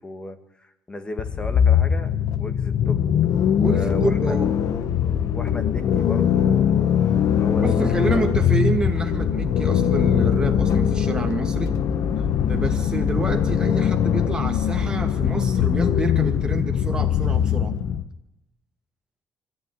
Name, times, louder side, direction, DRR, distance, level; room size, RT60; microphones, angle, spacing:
voice 1, 0.0-3.0 3.6-4.4 5.3-8.2, left 1 dB, 15° left, 8 dB, 2.1 m, -35 dB
sound 1, 1.2-18.1, left 8 dB, 60° left, 1.2 m, -21 dB
voice 2, 3.6-4.6 7.6-11.8 12.5-17.8, right 2 dB, 15° right, 4 dB, 2.3 m, -28 dB
23.5 x 14.5 x 9.7 m, 0.93 s
cardioid pair, 150°, 6 cm